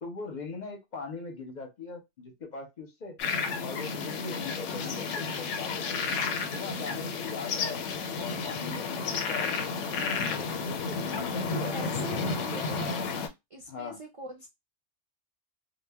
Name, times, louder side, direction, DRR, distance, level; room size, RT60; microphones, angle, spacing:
voice 1, 0.0-3.2 3.6-5.8 6.5-7.8 8.2-9.5 9.8-11.7 12.1-12.8 13.7-14.0, left 4 dB, 50° left, 0.6 m, -41 dB
sound 1, 3.2-13.3, left 5 dB, 90° left, 0.9 m, -32 dB
voice 2, 11.5-13.1 13.5-14.5, right 2 dB, 55° right, 0.3 m, -42 dB
2.1 x 2.1 x 3.3 m
omnidirectional pair, 1.2 m